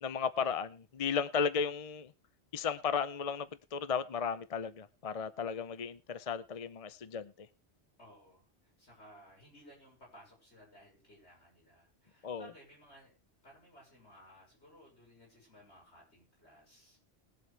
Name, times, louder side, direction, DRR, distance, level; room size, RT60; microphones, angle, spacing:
voice 1, 0.0-2.1 2.5-7.5 12.2-12.5, left 6 dB, 40° left, 0.7 m, -35 dB
voice 2, 8.0-8.5 8.8-13.2 13.4-17.2, equal, 80° left, 6.4 m, -58 dB
21.0 x 7.8 x 3.3 m
omnidirectional pair, 1.1 m